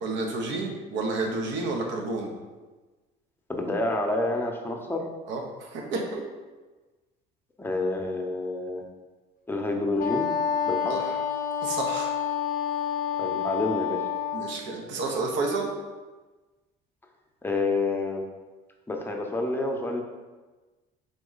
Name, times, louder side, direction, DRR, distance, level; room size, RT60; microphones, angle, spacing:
voice 1, 0.0-2.3 5.3-6.2 10.9-11.2 11.6-12.1 14.3-15.7, right 3 dB, 75° right, 2 dB, 0.8 m, -30 dB
voice 2, 3.5-5.0 7.6-8.8 9.5-10.3 10.7-11.0 13.2-14.0 17.4-18.2 18.9-20.0, left 2 dB, 10° left, 1 dB, 0.7 m, -28 dB
Wind instrument woodwind instrument, 10.0-14.6, left 8 dB, 45° left, 0.5 m, -28 dB
3.8 x 3.0 x 3.9 m, 1.3 s
supercardioid pair, 90°, 19 cm